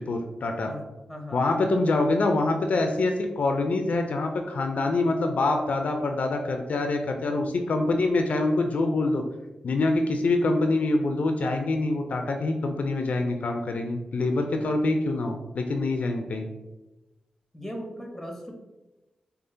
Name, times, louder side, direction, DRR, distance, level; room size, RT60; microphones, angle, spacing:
voice 1, 0.1-0.7 1.3-9.2 9.6-16.5, left 2 dB, 70° left, 5 dB, 0.4 m, -25 dB
voice 2, 0.7-1.4 17.5-18.5, equal, 5° left, 2 dB, 0.9 m, -38 dB
4.8 x 2.4 x 2.6 m, 1.0 s
cardioid pair, 55°, 3 cm